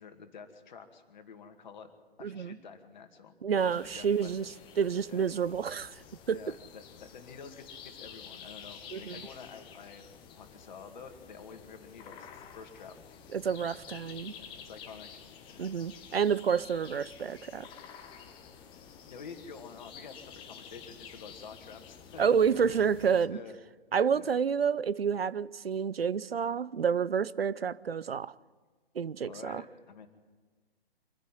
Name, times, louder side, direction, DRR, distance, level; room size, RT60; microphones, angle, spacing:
voice 1, 0.0-1.9 2.2-3.4 3.6-4.3 5.1-5.2 6.3-13.0 14.4-15.6 19.1-23.6 24.1-24.4 29.2-30.1, left 5 dB, 45° left, 2.3 m, -49 dB
voice 2, 2.2-2.6 3.4-4.5 4.8-5.9 6.3-6.4 8.9-9.2 13.3-14.3 15.6-17.7 22.2-23.4 23.9-28.3 28.9-29.6, right 7 dB, 70° right, 0.7 m, -29 dB
sound 1, 3.5-23.3, left 7 dB, 15° left, 1.2 m, -50 dB
25.0 x 10.5 x 9.9 m
figure-of-eight pair, 130°, 31 cm